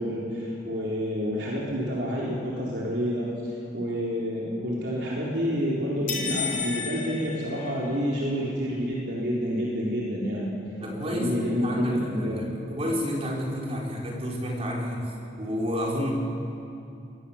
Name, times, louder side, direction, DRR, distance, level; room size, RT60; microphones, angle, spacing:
voice 1, 0.0-10.5 11.1-12.4, equal, 75° right, -5 dB, 4.1 m, -29 dB
sound 1, 6.1-8.2, left 6 dB, 50° left, 3.5 m, -32 dB
voice 2, 10.8-16.1, equal, 35° right, -2 dB, 4.6 m, -30 dB
26.0 x 21.0 x 7.4 m, 2.7 s
head